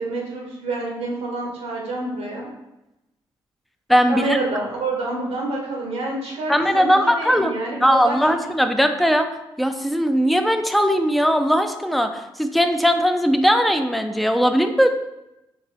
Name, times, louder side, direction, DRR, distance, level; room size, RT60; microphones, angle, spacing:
voice 1, 0.0-2.5 4.1-8.5, right 2 dB, 85° right, -2 dB, 1.4 m, -28 dB
voice 2, 3.9-4.4 6.5-7.5 7.8-9.3 9.6-14.9, equal, ahead, 6 dB, 0.5 m, -19 dB
4.2 x 3.0 x 4.0 m, 0.94 s
cardioid pair, 60°, 10 cm